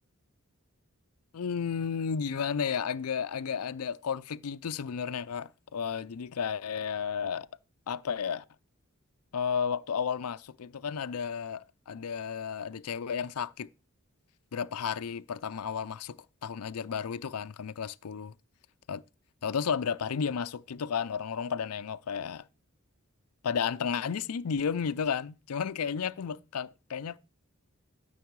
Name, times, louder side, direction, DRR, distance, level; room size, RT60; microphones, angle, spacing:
voice 1, 1.3-7.5 7.9-8.4 9.3-13.7 14.5-18.3 18.9-19.0 19.4-22.4 23.4-27.2, left 6 dB, 85° left, 0.5 m, -33 dB
13.0 x 6.3 x 4.7 m
head